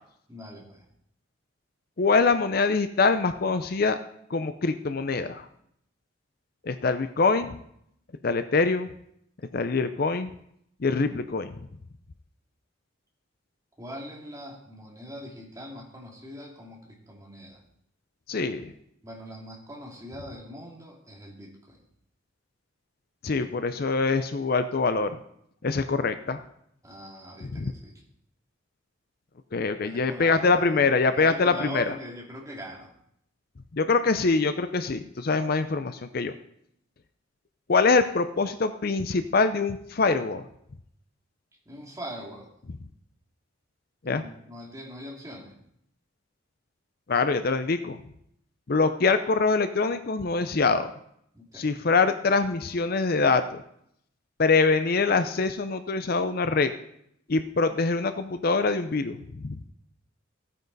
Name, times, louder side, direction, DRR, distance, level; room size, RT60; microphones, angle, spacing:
voice 1, 0.3-0.9 13.8-17.6 19.0-21.8 26.8-27.9 29.8-30.8 31.1-32.9 41.7-42.5 44.0-45.6 51.3-51.8, equal, 15° right, -3 dB, 2.5 m, -42 dB
voice 2, 2.0-4.0 4.3-5.5 6.6-7.6 8.2-8.9 9.5-10.3 10.8-11.5 18.3-18.7 23.2-25.2 25.6-26.4 27.5-27.7 29.5-31.8 33.7-36.3 37.7-40.4 44.1-44.2 47.1-48.0 48.7-50.9 51.5-53.6 54.4-56.7 57.3-59.6, left 4 dB, 50° left, 10 dB, 0.5 m, -24 dB
15.0 x 9.2 x 4.0 m, 0.74 s
head